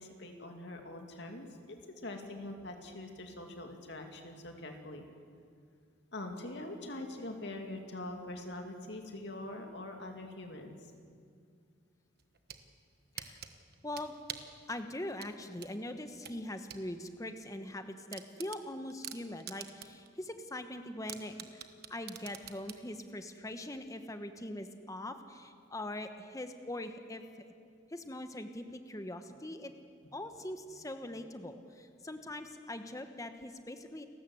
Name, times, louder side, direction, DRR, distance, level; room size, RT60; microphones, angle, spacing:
voice 1, 0.0-1.5 2.0-5.0 6.1-10.8, left 1 dB, 60° left, 3 dB, 2.6 m, -43 dB
sound 1, 12.2-12.6 13.2-14.6 15.2-16.8 17.2-17.3 17.7-17.8 18.1-20.1 20.4-20.5 21.1-22.8, right 10 dB, 55° right, 1.2 m, -45 dB
voice 2, 13.8-14.1 14.7-27.2 27.9-29.7 30.1-34.1, left 1 dB, 15° left, 8 dB, 1.1 m, -42 dB
29.5 x 13.5 x 8.0 m, 2.2 s
head